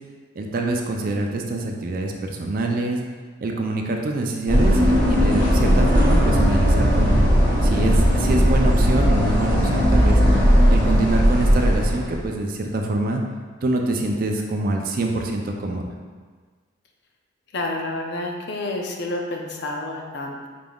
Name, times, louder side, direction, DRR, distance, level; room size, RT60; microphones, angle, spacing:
voice 1, 0.3-3.0 3.4-7.3 7.6-13.2 13.6-15.8, right 2 dB, 45° right, 2 dB, 0.4 m, -25 dB
sound 1, 4.5-12.3, equal, 25° left, 1.5 m, -17 dB
voice 2, 17.5-20.5, left 2 dB, 55° left, 1 dB, 0.5 m, -29 dB
4.9 x 3.5 x 2.3 m, 1.5 s
head